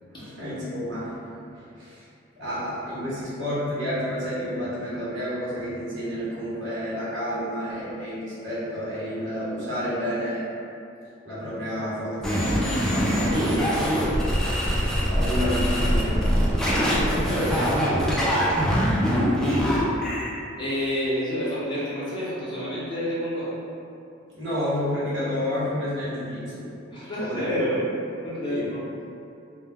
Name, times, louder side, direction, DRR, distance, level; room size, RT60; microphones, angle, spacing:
voice 1, 0.2-1.2 1.5-2.0 2.4-10.5 11.2-12.4 13.3-14.1 14.9-16.9 17.3-17.9 18.3-18.7 24.3-26.7 27.2-27.4 28.5-28.6, equal, 65° right, -9 dB, 1.0 m, -30 dB
sound 1, 12.2-20.3, equal, 5° left, 0.3 m, -23 dB
voice 2, 13.0-14.0 17.2-18.6 20.6-23.5 26.9-27.9 28.2-28.9, equal, 25° left, -10 dB, 0.7 m, -30 dB
2.2 x 2.1 x 3.3 m, 2.6 s
head